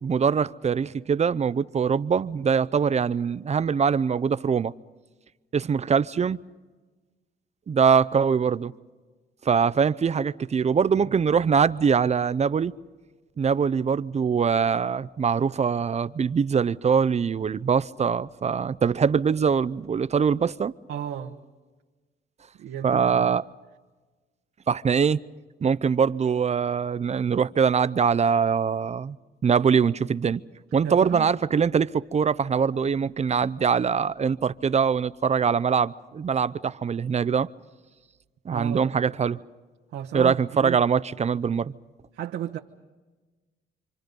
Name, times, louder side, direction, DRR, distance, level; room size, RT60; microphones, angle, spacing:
voice 1, 0.0-4.7 5.5-6.4 7.7-8.7 9.4-12.7 13.4-20.7 22.8-23.4 24.7-25.2 25.6-29.2 29.4-30.4 30.7-37.5 38.4-39.4 40.1-41.7, right 6 dB, 35° right, 0.6 m, -23 dB
voice 2, 20.9-21.4 22.6-23.4 30.8-31.3 38.5-38.9 39.9-40.8 42.1-42.6, right 10 dB, 85° right, 1.2 m, -33 dB
27.5 x 25.5 x 5.3 m
cardioid pair, 90°, 20 cm